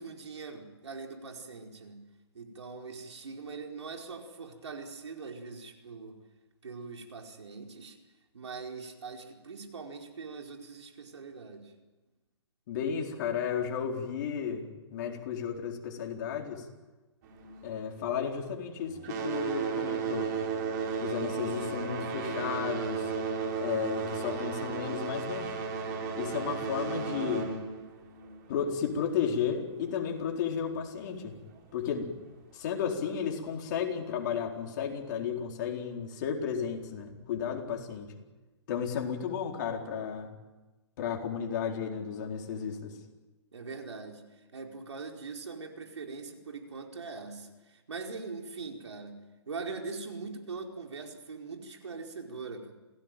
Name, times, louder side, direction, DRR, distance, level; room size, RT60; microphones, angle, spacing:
voice 1, 0.0-2.0 2.3-6.2 6.6-8.0 8.3-11.7 43.5-44.2 44.5-49.2 49.5-52.7, right 4 dB, 85° right, 2 dB, 4.7 m, -42 dB
voice 2, 12.7-16.6 17.6-20.3 21.0-23.1 23.6-25.5 26.1-27.5 28.5-31.4 31.7-32.1 32.5-38.1 38.7-40.3 41.0-43.0, left 7 dB, 45° left, 2 dB, 4.3 m, -33 dB
sound 1, 17.2-18.6 18.9-29.2 30.1-30.2 30.8-30.9 31.6-31.7, right 5 dB, 40° right, 4.4 m, -34 dB
27.5 x 17.5 x 9.2 m, 1.1 s
hypercardioid pair, 150°, 14 cm